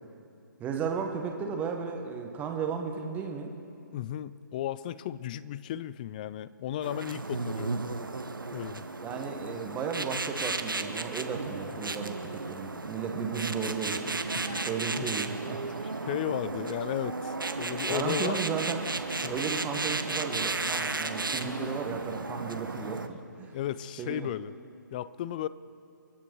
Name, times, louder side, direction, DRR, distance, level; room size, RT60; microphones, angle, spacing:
voice 1, 0.6-3.5 9.0-14.1 14.7-16.1 17.9-18.8 19.3-23.6 24.0-24.3, right 6 dB, 15° right, 3 dB, 1.4 m, -34 dB
voice 2, 3.9-7.7 8.5-8.9 14.3-14.7 15.0-15.1 16.0-18.4 19.2-19.4 21.4-21.6 23.5-24.5 24.9-25.5, left 12 dB, 25° left, 17 dB, 0.4 m, -34 dB
sound 1, 6.8-23.1, right 3 dB, 80° right, 1.1 m, -34 dB
29.5 x 9.9 x 4.6 m, 2.5 s
figure-of-eight pair, 140°, 11 cm